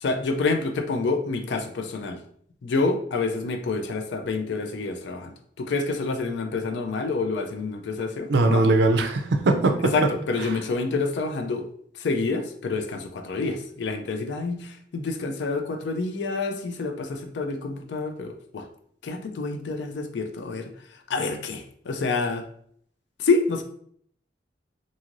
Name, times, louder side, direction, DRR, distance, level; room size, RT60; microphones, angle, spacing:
voice 1, 0.0-2.2 2.6-8.6 9.9-11.7 11.9-18.7 19.0-20.7 21.1-22.4 23.2-23.6, left 3 dB, 70° left, 6 dB, 0.4 m, -28 dB
voice 2, 8.3-10.1, right 2 dB, 65° right, 6 dB, 0.4 m, -20 dB
2.6 x 2.5 x 3.0 m, 0.62 s
head